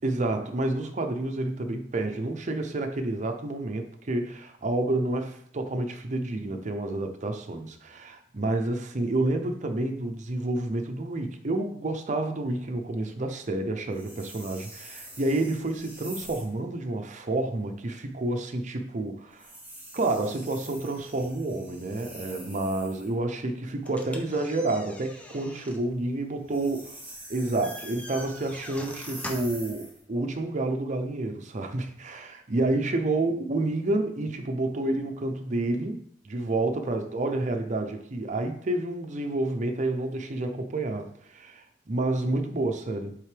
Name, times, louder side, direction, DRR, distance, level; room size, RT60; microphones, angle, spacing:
voice 1, 0.0-19.5 19.9-26.8 27.3-43.2, right 2 dB, 45° right, 5 dB, 0.6 m, -29 dB
sound 1, 13.9-16.6 19.3-23.2 26.4-30.0, right 1 dB, 10° right, 1.4 m, -46 dB
sound 2, 23.8-29.7, left 1 dB, 10° left, 0.7 m, -44 dB
7.7 x 3.7 x 3.3 m, 0.64 s
head